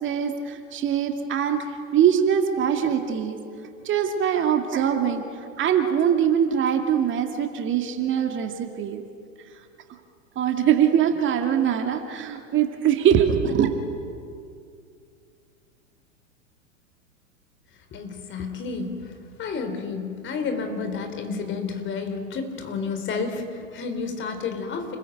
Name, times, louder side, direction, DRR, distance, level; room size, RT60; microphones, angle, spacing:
voice 1, 0.0-1.7 1.9-3.4 3.8-5.2 5.6-9.0 10.4-13.7, right 9 dB, 30° right, 5 dB, 2.3 m, -22 dB
voice 2, 17.9-25.0, left 4 dB, 30° left, 7 dB, 4.2 m, -31 dB
29.5 x 21.5 x 9.3 m, 2.3 s
figure-of-eight pair, 100°, 39 cm